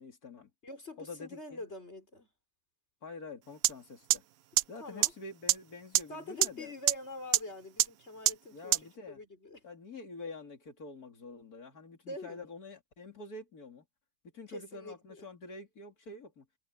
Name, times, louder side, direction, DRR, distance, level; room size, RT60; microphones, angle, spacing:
voice 1, 0.0-0.5 1.0-1.6 3.0-4.2 4.7-6.7 8.5-9.2 9.6-13.8 14.3-16.4, left 3 dB, 90° left, 3.3 m, -47 dB
voice 2, 0.6-2.3 4.8-5.1 6.1-9.7 12.1-12.5 14.5-15.3, left 1 dB, 45° left, 5.2 m, -45 dB
sound 1, 3.6-3.7 4.1-4.2 4.6-4.7 5.0-5.1 5.5-5.6 6.0-6.1 6.4-6.5 6.9-7.0 7.3-7.4 7.8-7.9 8.3-8.4 8.7-8.8, right 14 dB, 75° right, 1.1 m, -23 dB
omnidirectional pair, 1.5 m